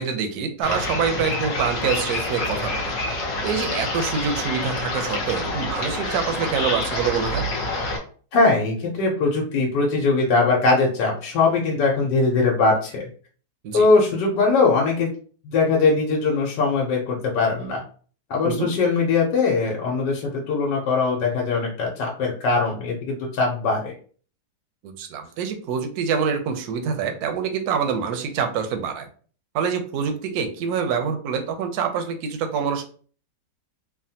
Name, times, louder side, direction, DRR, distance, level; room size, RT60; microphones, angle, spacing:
voice 1, 0.0-2.9 3.4-7.4 13.6-13.9 18.4-18.7 24.8-29.1 29.5-32.8, right 6 dB, 70° right, 7 dB, 1.0 m, -26 dB
sound 1, 0.6-8.0, left 2 dB, 60° left, 1.0 m, -27 dB
voice 2, 8.3-13.0 13.7-15.1 15.4-17.8 18.3-23.9, left 3 dB, 85° left, -1 dB, 1.3 m, -21 dB
3.4 x 2.1 x 2.7 m, 0.42 s
omnidirectional pair, 1.8 m